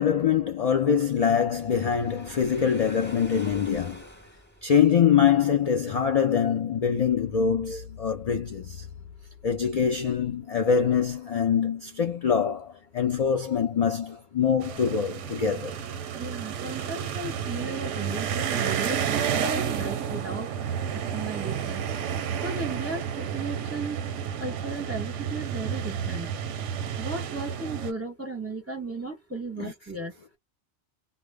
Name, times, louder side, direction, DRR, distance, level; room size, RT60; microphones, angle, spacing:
voice 1, 0.0-4.0 4.6-8.9 9.4-15.7 29.6-29.7, left 7 dB, 65° left, 0.3 m, -24 dB
Waves surf, 1.5-5.0, right 1 dB, 10° left, 0.9 m, -46 dB
sound 1, 14.6-27.9, right 8 dB, 85° right, 0.9 m, -31 dB
voice 2, 16.2-20.5 20.9-21.9 22.4-24.0 24.4-26.3 27.0-30.1, right 3 dB, 15° right, 0.6 m, -35 dB
2.1 x 2.0 x 3.3 m
omnidirectional pair, 1.2 m